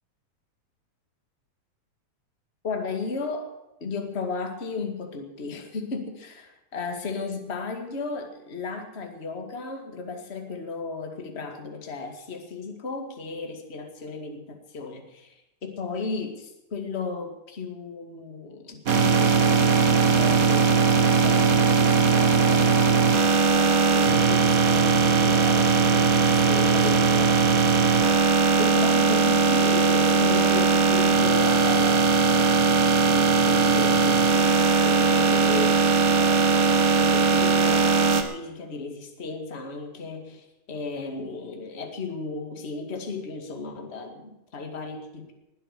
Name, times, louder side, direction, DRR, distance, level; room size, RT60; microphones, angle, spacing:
voice 1, 2.6-3.5 3.8-15.3 15.6-23.2 23.4-45.3, left 4 dB, 25° left, 4 dB, 1.7 m, -35 dB
sound 1, 18.9-38.2, right 5 dB, 70° right, 0.8 m, -20 dB
20.0 x 8.6 x 6.6 m, 0.92 s
omnidirectional pair, 3.9 m